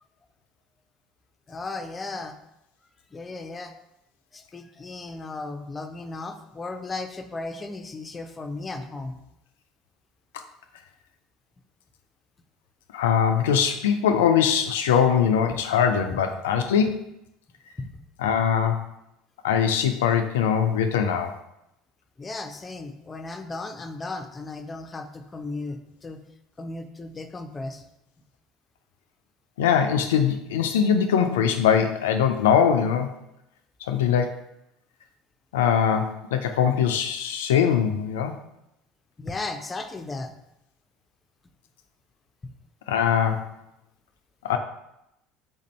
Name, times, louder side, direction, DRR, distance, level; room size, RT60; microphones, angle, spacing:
voice 1, 1.5-2.3 3.1-3.7 4.3-9.2 16.1-16.2 17.8-18.0 22.2-26.2 26.6-27.9 39.2-40.3, left 3 dB, 25° left, 7 dB, 0.5 m, -35 dB
voice 2, 12.9-17.1 18.2-18.8 19.4-21.4 29.6-33.1 33.8-34.4 35.5-38.4 42.9-43.5 44.4-44.6, left 8 dB, 85° left, 6 dB, 0.3 m, -22 dB
3.8 x 2.6 x 4.2 m, 0.84 s
hypercardioid pair, 75°, 0 cm